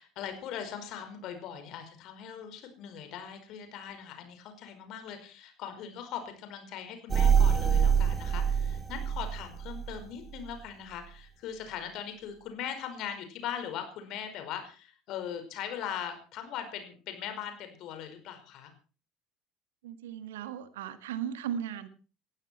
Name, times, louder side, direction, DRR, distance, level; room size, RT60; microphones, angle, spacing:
voice 1, 0.0-18.7, left 9 dB, 50° left, 7 dB, 5.1 m, -40 dB
sound 1, 7.1-9.9 10.4-10.5, right 7 dB, 25° right, 2.7 m, -25 dB
voice 2, 19.8-21.9, right 9 dB, 65° right, 12 dB, 1.6 m, -36 dB
19.0 x 15.5 x 4.5 m, 0.38 s
figure-of-eight pair, 65°, 0 cm